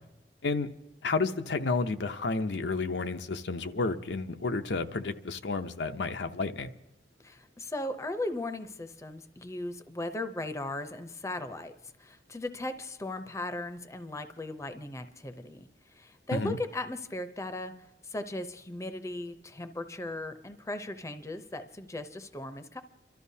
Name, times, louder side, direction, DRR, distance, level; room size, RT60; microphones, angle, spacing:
voice 1, 1.0-6.7 16.3-16.6, left 3 dB, 80° left, 0.7 m, -31 dB
voice 2, 7.2-11.7 12.0-17.7 18.0-22.8, left 1 dB, 15° left, 0.6 m, -37 dB
29.0 x 13.0 x 2.8 m
head